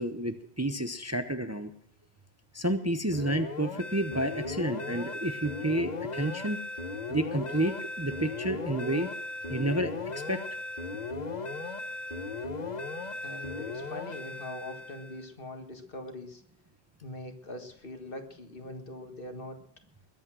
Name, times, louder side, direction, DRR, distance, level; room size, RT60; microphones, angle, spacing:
voice 1, 0.0-1.7 2.5-6.6 7.1-9.1 9.5-10.4, right 1 dB, 15° right, 8 dB, 0.8 m, -30 dB
sound 1, 3.1-15.2, left 3 dB, 45° left, 1.2 m, -37 dB
voice 2, 13.2-16.4 17.0-19.6, left 2 dB, 60° left, 6 dB, 1.9 m, -42 dB
21.0 x 8.6 x 6.2 m, 0.69 s
omnidirectional pair, 1.1 m